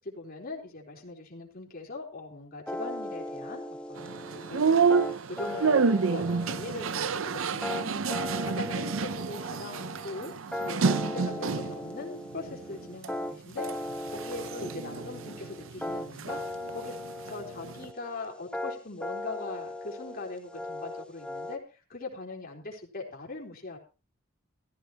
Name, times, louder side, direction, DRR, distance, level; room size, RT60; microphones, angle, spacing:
voice 1, 0.0-4.9 5.3-10.3 10.6-13.7 14.1-17.0 17.3-21.6 21.9-23.8, left 3 dB, 45° left, 0 dB, 3.9 m, -41 dB
sound 1, 2.7-21.6, left 1 dB, 5° left, 1.0 m, -38 dB
sound 2, 4.0-11.8 12.3-13.1 13.5-16.4 16.7-17.9, right 5 dB, 65° right, 0.6 m, -29 dB
15.5 x 14.5 x 3.0 m, 0.33 s
head